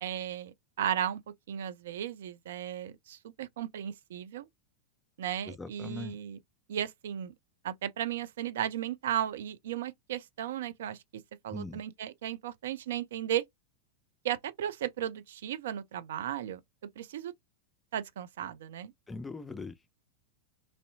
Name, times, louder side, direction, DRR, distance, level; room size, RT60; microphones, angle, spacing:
voice 1, 0.0-1.2 1.5-4.5 5.2-6.4 6.7-7.3 7.6-11.0 11.4-13.4 14.2-16.6 17.0-17.3 17.9-18.9, right 10 dB, 60° right, 0.4 m, -35 dB
voice 2, 5.4-6.2 11.5-11.8 19.1-19.7, left 3 dB, 15° left, 0.4 m, -40 dB
3.1 x 2.6 x 2.7 m
figure-of-eight pair, 90°, 0 cm